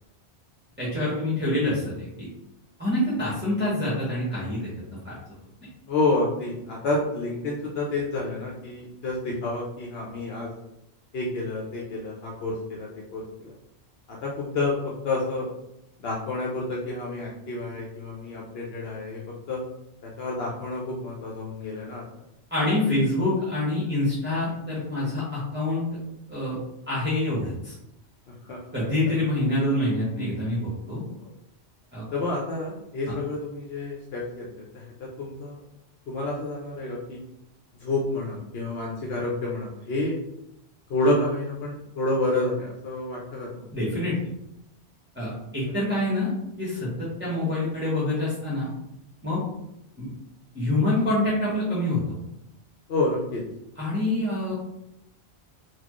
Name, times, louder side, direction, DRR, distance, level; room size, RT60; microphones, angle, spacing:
voice 1, 0.8-2.3 2.8-4.7 5.0-5.2 22.5-25.8 26.3-26.6 26.9-27.7 28.7-31.0 31.9-32.1 33.1-33.2 43.7-44.2 45.1-46.3 46.6-48.7 49.2-49.4 50.0-50.1 50.5-52.2 53.8-54.5, left 1 dB, 10° right, -8 dB, 0.9 m, -26 dB
voice 2, 5.9-10.5 11.1-13.5 14.1-14.8 15.0-15.5 16.0-19.2 19.5-19.6 20.0-22.0 28.4-28.9 31.2-31.3 32.1-35.6 36.1-37.2 37.8-40.2 40.9-43.7 52.9-53.4, left 2 dB, 70° left, -3 dB, 0.9 m, -29 dB
4.1 x 2.3 x 3.0 m, 0.84 s
omnidirectional pair, 1.1 m